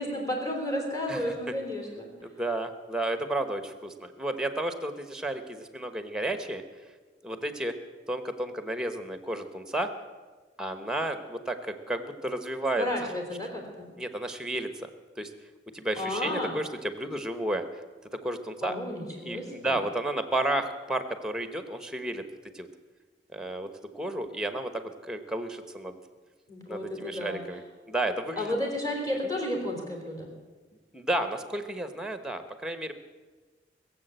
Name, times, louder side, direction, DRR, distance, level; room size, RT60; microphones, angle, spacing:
voice 1, 0.0-2.1 12.8-13.9 16.0-16.6 18.6-19.8 26.5-27.4 28.4-30.3, left 1 dB, 20° left, 1 dB, 3.6 m, -32 dB
voice 2, 2.2-6.6 7.2-7.8 8.1-9.9 10.6-12.9 14.0-14.9 15.2-15.3 15.7-17.8 18.1-18.8 19.2-22.3 22.5-22.7 23.3-26.0 26.7-27.6 27.9-28.5 30.9-32.9, right 1 dB, 5° right, 9 dB, 1.0 m, -32 dB
20.0 x 7.6 x 8.0 m, 1.3 s
head